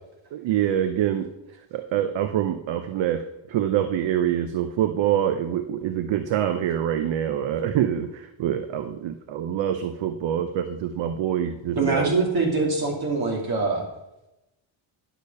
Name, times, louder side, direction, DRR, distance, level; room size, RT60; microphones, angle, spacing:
voice 1, 0.3-1.3 1.7-3.2 3.5-12.1, right 10 dB, 65° right, 9 dB, 0.8 m, -25 dB
voice 2, 11.8-13.8, right 3 dB, 50° right, 0 dB, 2.7 m, -23 dB
10.5 x 6.6 x 5.4 m, 0.91 s
cardioid pair, 175°, 48 cm